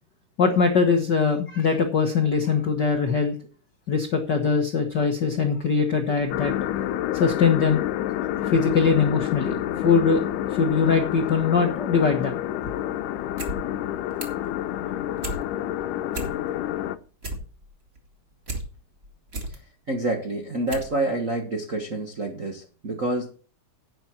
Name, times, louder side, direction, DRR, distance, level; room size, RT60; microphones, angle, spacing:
voice 1, 0.4-3.3 3.9-6.5 7.1-7.8 8.4-10.2 10.5-12.3 12.8-12.9, left 5 dB, 60° left, 4 dB, 1.1 m, -22 dB
sound 1, 6.3-17.0, left 12 dB, 85° left, 2.2 m, -29 dB
sound 2, 13.2-13.6 13.8-14.5 14.8-15.4 15.8-16.7 17.0-18.6 19.0-19.6 20.1-20.2 20.7-20.9 21.2-21.3, right 2 dB, 25° right, 1.6 m, -34 dB
voice 2, 19.9-23.3, right 2 dB, 45° right, 1 dB, 1.0 m, -28 dB
10.5 x 8.9 x 4.3 m, 0.39 s
omnidirectional pair, 3.7 m